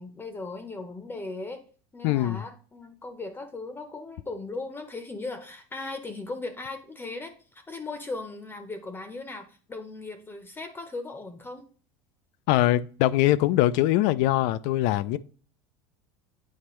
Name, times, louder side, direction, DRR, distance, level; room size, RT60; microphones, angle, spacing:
voice 1, 0.0-1.6 1.9-11.7, left 3 dB, 15° left, 0.7 m, -38 dB
voice 2, 2.0-2.4 12.5-15.2, left 15 dB, 65° left, 0.4 m, -22 dB
8.5 x 4.3 x 3.1 m
supercardioid pair, 110°, 12 cm